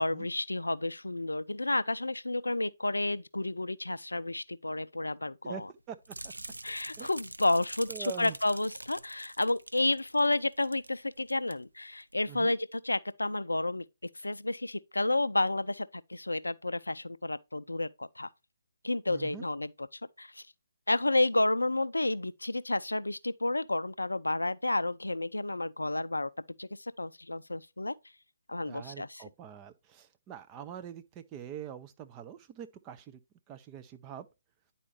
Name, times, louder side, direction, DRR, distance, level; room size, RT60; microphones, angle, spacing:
voice 1, 0.0-5.7 6.6-13.8 14.2-18.3 18.8-20.4 20.9-26.3 26.6-26.7 27.0-27.9 28.5-29.2, left 2 dB, 75° left, 0.4 m, -31 dB
sound 1, 6.0-10.9 11.2-11.5 12.0-12.1, right 1 dB, 80° right, 0.5 m, -45 dB
voice 2, 7.9-8.4 12.3-12.5 19.1-19.4 28.6-33.2 33.5-34.3, right 9 dB, 20° right, 0.5 m, -44 dB
9.9 x 4.2 x 3.1 m
figure-of-eight pair, 140°, 0 cm